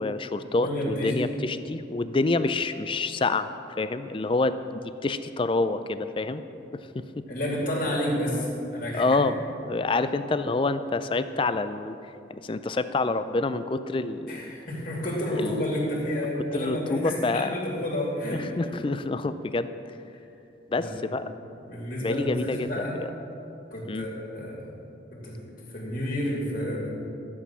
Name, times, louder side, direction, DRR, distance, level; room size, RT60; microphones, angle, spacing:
voice 1, 0.0-3.5 3.8-6.4 6.7-7.2 8.9-9.4 9.7-12.0 12.3-14.5 15.4-15.6 16.5-17.7 18.2-19.7 20.7-21.2 22.0-23.1 23.9-24.1, left 3 dB, 25° left, 12 dB, 0.4 m, -27 dB
voice 2, 0.6-1.1 7.3-9.2 14.3-18.7 20.7-20.9 21.6-23.0 23.7-24.6 25.1-25.4 25.7-26.9, left 1 dB, 45° left, -3 dB, 2.8 m, -30 dB
12.5 x 8.5 x 6.1 m, 2.7 s
head